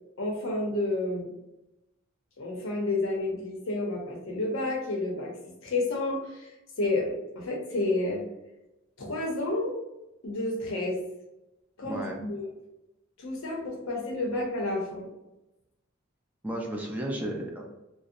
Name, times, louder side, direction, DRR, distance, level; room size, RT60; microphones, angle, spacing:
voice 1, 0.2-1.3 2.4-5.3 5.6-6.5 6.8-8.2 9.0-9.7 10.2-11.0 11.8-12.5 13.2-15.1, left 2 dB, 75° left, 1 dB, 0.7 m, -30 dB
voice 2, 11.8-12.2 16.4-17.7, right 1 dB, 10° right, -1 dB, 0.4 m, -33 dB
2.6 x 2.0 x 2.5 m, 0.95 s
head